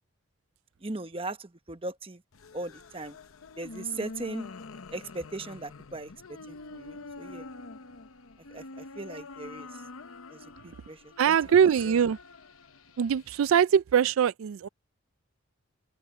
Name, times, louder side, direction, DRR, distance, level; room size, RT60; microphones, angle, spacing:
voice 1, 0.8-2.2 2.5-3.2 3.6-4.5 4.9-7.5 8.5-9.7 10.3-11.3 11.8-11.9, right 2 dB, 25° right, 1.0 m, -39 dB
sound 1, 2.3-13.5, left 3 dB, 85° left, 0.9 m, -46 dB
voice 2, 11.2-12.2 13.0-14.7, right 8 dB, 80° right, 0.3 m, -22 dB
open air
head